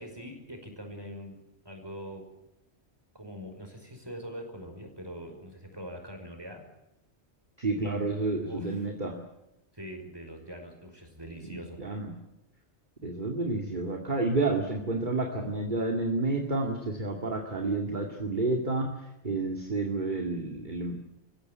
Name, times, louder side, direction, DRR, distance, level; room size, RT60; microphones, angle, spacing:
voice 1, 0.0-1.4 1.6-2.2 3.1-6.6 8.4-8.9 9.7-11.8, equal, 20° right, 4 dB, 5.5 m, -43 dB
voice 2, 7.6-9.2 11.4-12.1 13.0-18.9 19.2-21.0, right 2 dB, 45° right, 2 dB, 2.5 m, -30 dB
27.0 x 15.5 x 9.5 m, 0.88 s
omnidirectional pair, 1.2 m